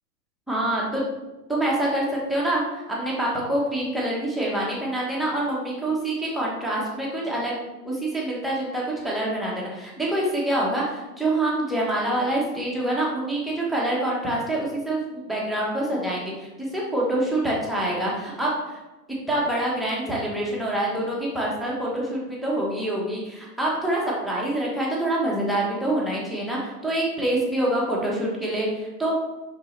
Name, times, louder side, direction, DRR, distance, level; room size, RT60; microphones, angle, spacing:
voice 1, 0.5-1.1 1.5-2.0 2.3-7.6 7.8-18.8 19.3-29.1, right 1 dB, ahead, -5 dB, 0.9 m, -26 dB
5.4 x 5.4 x 3.2 m, 1.1 s
hypercardioid pair, 140°, 48 cm